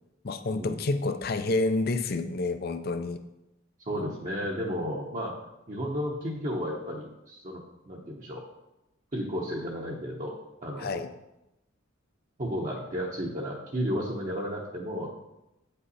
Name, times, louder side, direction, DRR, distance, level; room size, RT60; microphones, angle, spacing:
voice 1, 0.2-3.2 3.9-4.0 10.8-11.1, left 2 dB, 50° left, 10 dB, 0.5 m, -29 dB
voice 2, 3.8-5.4 5.7-8.4 9.1-10.4 10.6-11.0 12.4-15.1, equal, 35° right, -3 dB, 0.9 m, -33 dB
9.0 x 5.5 x 4.1 m, 0.90 s
head